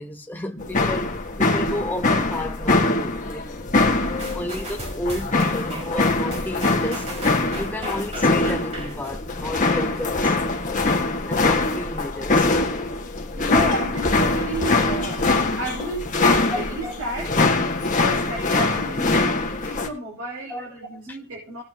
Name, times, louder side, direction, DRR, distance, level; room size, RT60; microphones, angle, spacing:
voice 1, 0.0-3.5 4.3-7.1 7.5-10.6 11.0-12.7 16.5-16.6 20.5-20.6 21.1-21.2, left 1 dB, 10° left, 1.1 m, -32 dB
sound 1, 0.6-19.9, left 3 dB, 35° left, 1.9 m, -23 dB
sound 2, 4.2-10.0 10.5-10.7, right 1 dB, 30° right, 4.7 m, -37 dB
voice 2, 4.2-4.6 7.8-7.9 13.4-15.3 15.6-21.6, right 1 dB, 70° right, 5.7 m, -33 dB
19.0 x 8.8 x 3.0 m
head